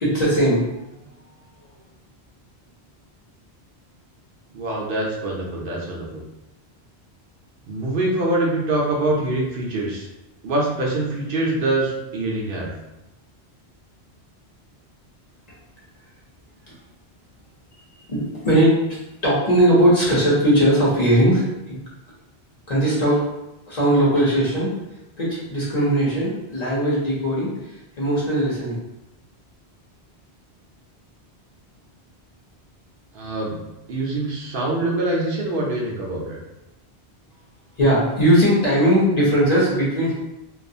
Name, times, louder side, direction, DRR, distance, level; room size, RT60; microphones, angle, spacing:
voice 1, 0.0-0.7 16.7-16.8 18.1-21.8 22.7-23.3 23.7-24.7 25.2-27.5 28.0-28.8 37.8-40.2, right 1 dB, 45° left, -7 dB, 0.7 m, -19 dB
voice 2, 4.5-6.2 7.7-10.1 10.4-12.7 33.1-33.6 33.9-36.4, right 2 dB, 65° right, -3 dB, 0.7 m, -24 dB
2.4 x 2.3 x 2.6 m, 0.94 s
omnidirectional pair, 1.1 m